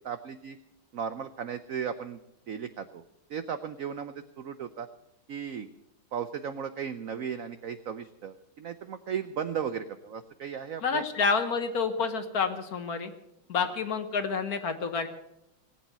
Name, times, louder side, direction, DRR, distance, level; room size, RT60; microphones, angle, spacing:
voice 1, 0.0-0.6 0.9-2.2 2.5-3.0 3.3-4.9 5.3-5.7 6.1-11.0 13.6-13.7, right 7 dB, 75° right, 11 dB, 0.7 m, -36 dB
voice 2, 10.8-13.1 13.5-15.1, left 5 dB, 50° left, 9 dB, 1.4 m, -28 dB
18.5 x 8.4 x 8.0 m, 0.83 s
omnidirectional pair, 2.2 m